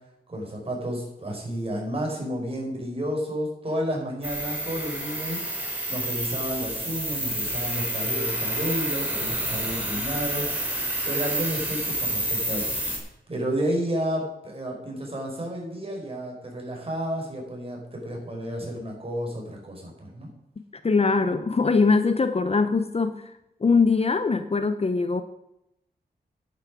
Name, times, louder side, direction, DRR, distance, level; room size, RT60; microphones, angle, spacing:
voice 1, 0.3-12.7 13.3-20.3, equal, 35° right, -1 dB, 4.9 m, -31 dB
sound 1, 4.2-13.0, right 1 dB, 10° right, 3.8 m, -29 dB
voice 2, 20.8-23.3 23.6-25.2, left 4 dB, 40° left, 10 dB, 0.8 m, -22 dB
10.0 x 9.8 x 6.2 m, 0.83 s
wide cardioid pair, 95°, 17 cm